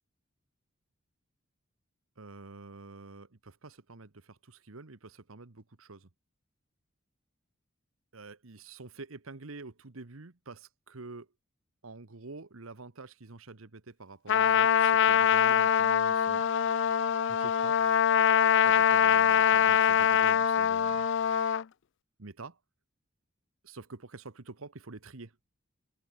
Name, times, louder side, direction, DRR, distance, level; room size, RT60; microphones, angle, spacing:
voice 1, 2.2-6.1 8.1-11.3 11.8-16.5 17.2-17.9 18.6-21.0 22.2-22.6 23.6-25.3, right 3 dB, 80° right, 1.3 m, -47 dB
Trumpet, 14.3-21.6, left 8 dB, 60° left, 0.5 m, -24 dB
open air
head